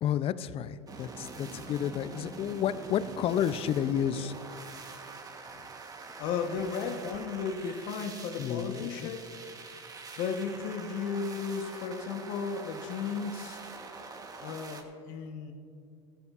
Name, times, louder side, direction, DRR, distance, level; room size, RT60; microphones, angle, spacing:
voice 1, 0.0-4.4 8.4-8.9, left 9 dB, 40° left, 15 dB, 0.5 m, -31 dB
sound 1, 0.9-14.8, right 4 dB, 25° right, 1.1 m, -45 dB
voice 2, 6.2-9.5 9.9-13.7 14.4-15.5, left 5 dB, 65° left, 5 dB, 1.1 m, -35 dB
15.5 x 14.0 x 2.5 m, 2.5 s
supercardioid pair, 105°, 15 cm